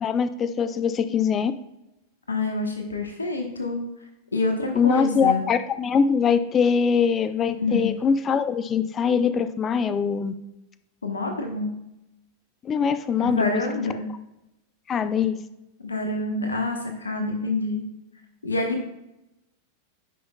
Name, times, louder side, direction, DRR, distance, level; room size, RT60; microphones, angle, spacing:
voice 1, 0.0-1.5 4.8-10.3 12.6-13.6 14.9-15.4, left 6 dB, 25° left, 13 dB, 0.4 m, -22 dB
voice 2, 2.3-3.8 4.3-5.5 7.6-8.0 11.0-11.7 13.2-14.1 15.8-17.8 18.4-18.9, left 2 dB, 75° left, 4 dB, 1.0 m, -27 dB
10.0 x 5.6 x 2.3 m, 0.90 s
figure-of-eight pair, 90°, 0 cm